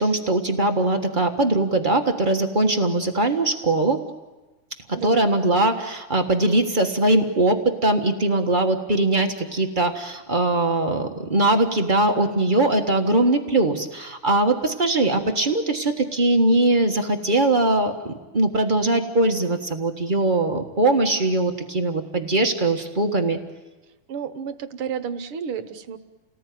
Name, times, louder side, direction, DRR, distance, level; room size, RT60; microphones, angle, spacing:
voice 1, 0.0-4.0 4.9-23.4, right 2 dB, 40° right, 4 dB, 0.6 m, -21 dB
voice 2, 24.1-26.0, right 7 dB, 60° right, 10 dB, 1.6 m, -31 dB
29.5 x 19.0 x 9.4 m, 1.2 s
omnidirectional pair, 3.4 m